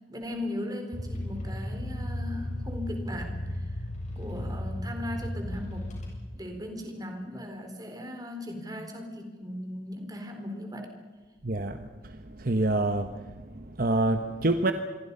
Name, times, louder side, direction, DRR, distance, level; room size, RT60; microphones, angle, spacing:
voice 1, 0.1-3.8 4.2-6.0 6.3-10.9, left 1 dB, 20° right, 4 dB, 4.1 m, -38 dB
sound 1, 0.9-6.5, left 1 dB, 40° left, 8.0 m, -35 dB
voice 2, 11.4-11.8 12.4-13.1 13.5-14.7, right 2 dB, 50° right, 8 dB, 1.2 m, -26 dB
28.0 x 23.0 x 5.6 m, 1.3 s
head